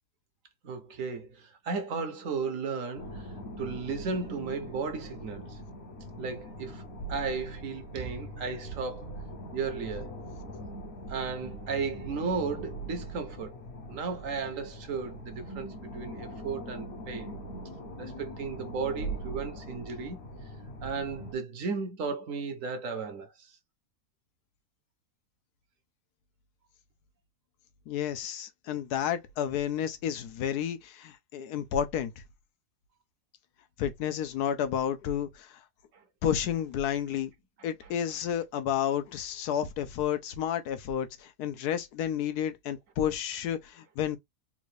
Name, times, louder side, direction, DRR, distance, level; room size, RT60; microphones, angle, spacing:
voice 1, 0.6-3.3 3.6-5.6 6.2-6.8 7.1-9.2 9.5-10.2 11.1-13.5 13.9-17.3 18.0-20.2 20.8-23.5, right 5 dB, 65° right, 1.0 m, -35 dB
sound 1, 3.0-21.3, right 1 dB, 50° left, 0.9 m, -42 dB
voice 2, 27.9-32.1 33.8-35.6 36.2-37.3 37.6-44.2, left 9 dB, 85° left, 1.2 m, -31 dB
3.7 x 2.5 x 3.1 m
omnidirectional pair, 1.6 m